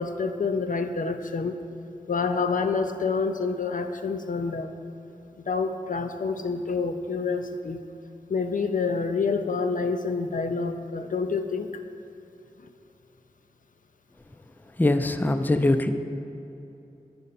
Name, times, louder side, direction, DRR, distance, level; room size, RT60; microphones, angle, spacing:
voice 1, 0.0-1.6 2.1-4.7 5.4-7.8 8.3-11.7, left 4 dB, 70° left, 7 dB, 0.4 m, -27 dB
voice 2, 14.8-15.9, left 2 dB, 15° left, 8 dB, 0.4 m, -22 dB
8.9 x 5.2 x 4.1 m, 2.8 s
wide cardioid pair, 40°, 14 cm